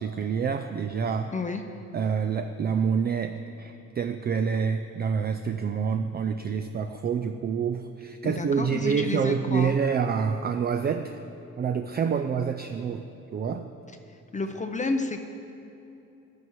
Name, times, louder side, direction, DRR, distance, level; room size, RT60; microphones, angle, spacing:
voice 1, 0.0-1.3 1.9-11.2 11.6-13.1 13.3-13.7, right 6 dB, 35° right, 7 dB, 0.4 m, -27 dB
voice 2, 8.2-9.7 14.3-15.2, left 3 dB, 25° left, 6 dB, 0.6 m, -30 dB
14.5 x 9.4 x 3.1 m, 2.9 s
cardioid pair, 90°, 30 cm